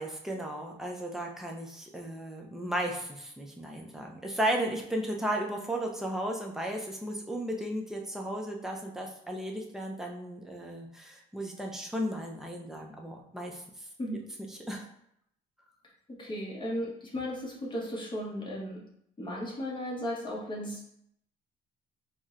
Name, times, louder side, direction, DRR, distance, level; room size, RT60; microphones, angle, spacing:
voice 1, 0.0-13.6 14.5-14.8, right 1 dB, 5° right, 0 dB, 0.5 m, -35 dB
voice 2, 16.1-18.8 19.2-20.8, equal, 30° left, -3 dB, 0.9 m, -35 dB
4.2 x 2.1 x 2.4 m, 0.73 s
cardioid pair, 110°, 17 cm